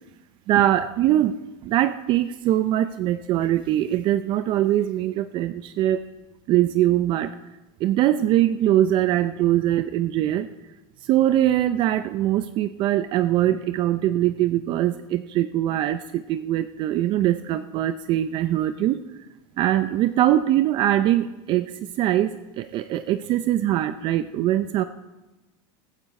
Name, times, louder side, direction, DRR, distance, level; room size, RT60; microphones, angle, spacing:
voice 1, 0.5-1.3 1.6-6.0 6.5-7.3 7.8-10.5 11.0-19.0 19.6-21.7 22.0-24.9, right 13 dB, 35° right, 11 dB, 0.5 m, -22 dB
15.0 x 14.0 x 4.2 m, 1.1 s
supercardioid pair, 145°, 13 cm